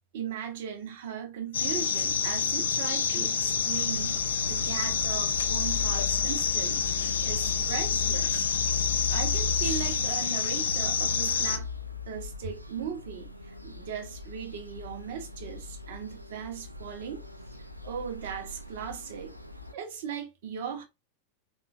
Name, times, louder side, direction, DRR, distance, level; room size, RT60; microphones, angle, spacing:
voice 1, 0.1-8.5 9.1-11.7 12.1-17.3 17.8-19.4 19.7-20.8, right 7 dB, 55° right, 0.7 m, -38 dB
sound 1, 1.5-11.6, left 6 dB, 65° left, 0.4 m, -28 dB
sound 2, 3.4-19.7, left 5 dB, 90° right, 0.3 m, -37 dB
3.7 x 2.2 x 2.4 m
figure-of-eight pair, 90°, 0 cm